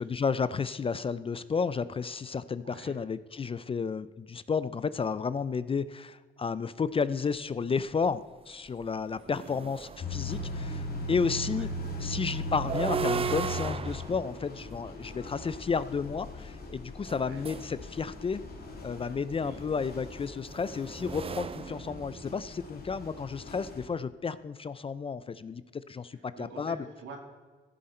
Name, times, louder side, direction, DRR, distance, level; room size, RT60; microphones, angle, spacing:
voice 1, 0.0-8.2 8.5-11.7 12.0-18.4 18.8-26.8, left 5 dB, 30° left, 15 dB, 0.4 m, -32 dB
voice 2, 2.6-2.9 9.2-9.5 11.5-11.7 17.2-17.5 19.3-19.6 26.1-27.2, right 4 dB, 75° right, 1 dB, 2.7 m, -47 dB
sound 1, 8.1-8.2 8.7-10.6 12.5-15.7 17.0-17.8 19.2-22.6, right 6 dB, 30° right, 0.4 m, -37 dB
sound 2, 10.0-23.9, left 1 dB, 50° left, 2.3 m, -39 dB
15.0 x 7.7 x 4.3 m, 1.4 s
cardioid pair, 90°, 20 cm